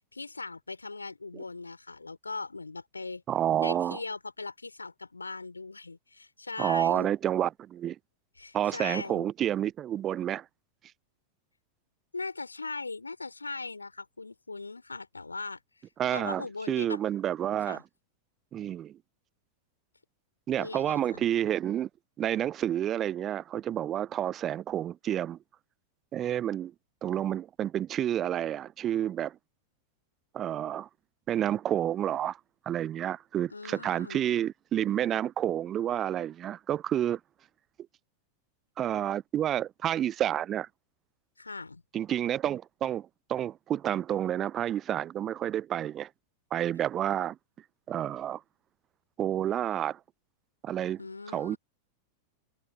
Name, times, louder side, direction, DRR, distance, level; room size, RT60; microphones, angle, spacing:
voice 1, 0.1-3.2 3.6-7.1 8.4-9.3 12.1-15.8 16.1-17.0 17.7-17.8 20.6-21.2 33.5-34.2 41.4-41.8 51.0-51.6, left 3 dB, 80° left, 3.2 m, -39 dB
voice 2, 3.3-4.0 6.6-8.0 8.5-10.4 16.0-17.8 18.5-19.0 20.5-21.9 22.2-25.4 26.1-26.7 27.0-29.4 30.3-30.9 31.3-32.4 32.7-37.2 38.8-40.7 41.9-46.1 46.5-47.4 47.9-48.4 49.2-50.0 50.6-51.0 51.3-51.6, right 11 dB, 30° right, 0.3 m, -29 dB
figure-of-eight pair, 90°, 0 cm